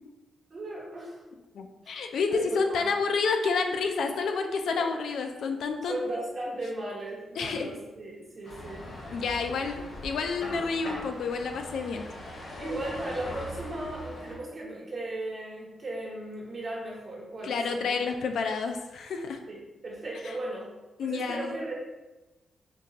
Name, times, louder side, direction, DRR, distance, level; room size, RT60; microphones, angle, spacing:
voice 1, 0.5-1.2 1.8-2.0 2.3-2.9 5.8-8.9 12.6-17.9 19.5-19.6 19.8-20.7 21.0-21.9, right 1 dB, 35° right, -4 dB, 1.0 m, -36 dB
voice 2, 1.5-6.2 7.4-7.7 9.1-12.1 17.4-19.4 21.0-21.6, left 4 dB, 75° left, 5 dB, 0.3 m, -29 dB
sound 1, 8.4-14.4, left 1 dB, 60° left, 0.9 m, -41 dB
3.6 x 2.9 x 2.8 m, 1.1 s
wide cardioid pair, 165°, 0 cm